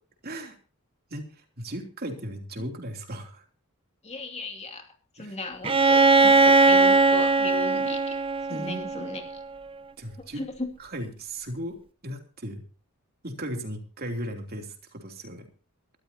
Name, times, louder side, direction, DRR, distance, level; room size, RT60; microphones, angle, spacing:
voice 1, 0.2-0.6 1.1-3.4 5.2-5.4 8.5-8.9 10.0-10.4 10.8-11.8 12.0-12.6 13.2-15.4, right 1 dB, 45° right, 4 dB, 3.1 m, -36 dB
voice 2, 4.0-8.2 8.5-9.4 10.3-10.7, left 3 dB, 30° left, 4 dB, 2.6 m, -37 dB
Bowed string instrument, 5.6-9.4, right 3 dB, 25° right, 0.7 m, -20 dB
23.0 x 14.0 x 2.9 m, 0.36 s
head